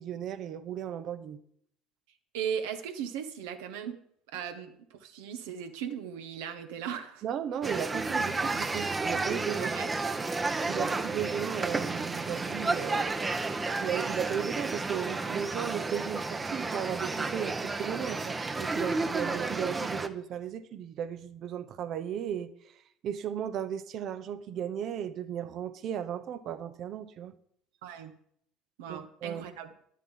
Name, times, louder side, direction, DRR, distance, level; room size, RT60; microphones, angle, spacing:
voice 1, 0.0-1.4 7.2-9.7 10.7-13.1 13.8-22.5 23.0-27.3 28.9-29.5, right 9 dB, 50° right, 12 dB, 1.0 m, -35 dB
voice 2, 2.3-4.0 4.3-7.2 9.6-9.9 10.8-11.4 27.8-28.1 28.8-29.7, right 8 dB, 70° right, 6 dB, 1.5 m, -38 dB
sound 1, 7.6-20.1, right 3 dB, 20° right, 1.1 m, -32 dB
11.0 x 7.4 x 7.5 m, 0.68 s
hypercardioid pair, 65°, 0 cm